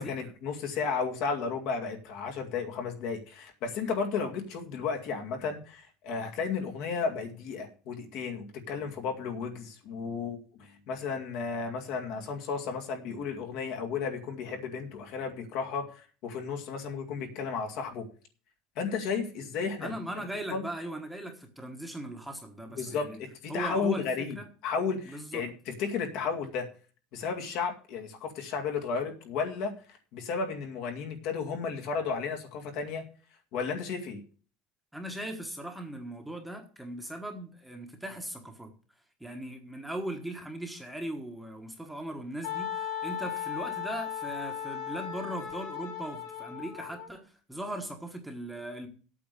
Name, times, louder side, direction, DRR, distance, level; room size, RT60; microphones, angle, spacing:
voice 1, 0.0-18.1 18.8-20.0 20.5-20.6 22.8-24.4 24.6-26.7 27.1-29.8 30.1-33.0 33.5-34.2, left 5 dB, 55° left, 4 dB, 2.1 m, -33 dB
voice 2, 19.8-23.2 23.5-24.0 24.3-24.5 25.0-25.4 34.9-38.7 39.2-48.9, right 1 dB, ahead, 3 dB, 1.3 m, -39 dB
Wind instrument woodwind instrument, 42.4-47.1, left 9 dB, 75° left, 3.5 m, -36 dB
8.6 x 6.8 x 8.3 m, 0.39 s
cardioid pair, 175°, 0 cm